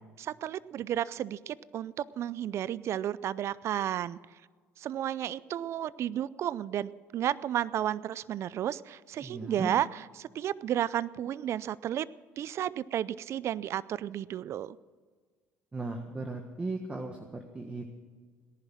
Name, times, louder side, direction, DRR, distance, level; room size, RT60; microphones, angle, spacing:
voice 1, 0.2-4.2 4.8-9.9 10.2-12.1 12.4-14.8, right 11 dB, 55° right, 20 dB, 0.5 m, -32 dB
voice 2, 9.2-9.7 15.7-18.0, right 3 dB, 20° right, 4 dB, 1.6 m, -37 dB
18.5 x 11.0 x 6.2 m, 1.5 s
supercardioid pair, 80°, 6 cm